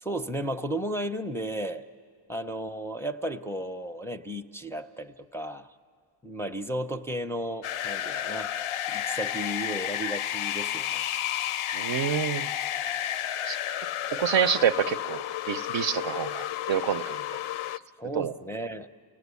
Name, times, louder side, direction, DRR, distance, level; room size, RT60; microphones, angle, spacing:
voice 1, 0.0-1.8 2.3-5.7 6.2-8.5 8.9-11.0 18.0-18.9, right 1 dB, 5° left, 4 dB, 0.5 m, -34 dB
sound 1, 7.6-17.8, left 11 dB, 75° left, 0.5 m, -31 dB
voice 2, 11.7-12.5 13.5-13.6 14.2-17.2 18.1-18.3, right 8 dB, 65° right, 10 dB, 0.7 m, -27 dB
29.0 x 17.5 x 8.3 m, 2.1 s
wide cardioid pair, 105°, 49 cm